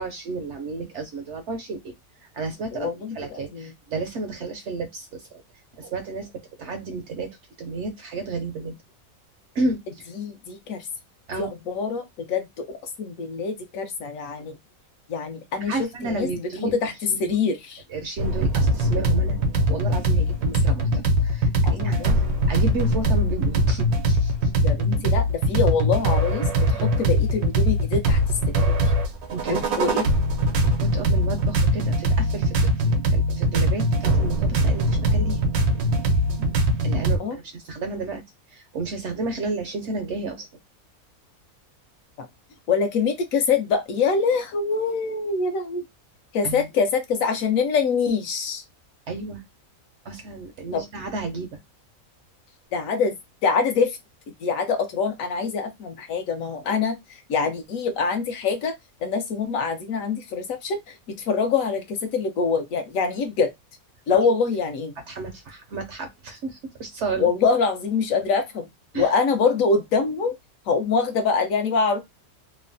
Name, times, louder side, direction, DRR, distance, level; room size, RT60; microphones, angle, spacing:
voice 1, 0.0-1.9 2.2-5.4 5.8-6.3 6.6-7.3 7.6-8.7 9.5-10.1 11.3-11.5 15.6-16.8 17.1-17.4 17.9-19.4 19.7-22.0 22.4-24.5 29.3-29.6 30.6-32.6 33.1-35.4 36.8-38.2 38.5-40.5 46.4-46.7 49.1-49.4 50.0-51.6 65.1-67.3 68.9-69.1, right 3 dB, 65° right, 0.7 m, -32 dB
voice 2, 2.7-3.7 10.2-10.9 11.4-14.6 15.1-16.9 17.2-17.8 21.7-22.2 24.6-28.2 28.6-28.9 29.5-30.1 37.2-37.4 42.2-42.3 42.7-45.8 46.3-48.6 50.7-50.8 52.7-53.2 53.4-54.0 54.4-58.7 59.0-63.5 64.1-64.9 67.2-68.7 68.9-70.4 70.7-72.0, left 5 dB, 70° left, 1.0 m, -25 dB
sound 1, 18.2-37.2, right 1 dB, 85° right, 1.1 m, -21 dB
3.1 x 2.1 x 2.5 m
omnidirectional pair, 1.5 m